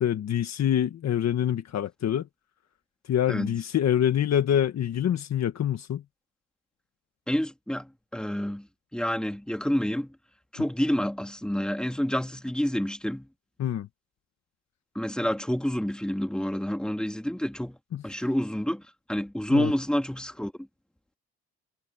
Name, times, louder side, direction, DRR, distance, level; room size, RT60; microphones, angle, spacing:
voice 1, 0.0-2.3 3.1-6.0 13.6-13.9 17.9-18.0 19.5-19.7, left 10 dB, 60° left, 1.6 m, -25 dB
voice 2, 7.3-8.7 8.9-10.1 10.5-13.3 14.9-17.8 18.0-18.8 19.1-20.5, equal, 5° left, 2.5 m, -28 dB
cardioid pair, 90°, 30 cm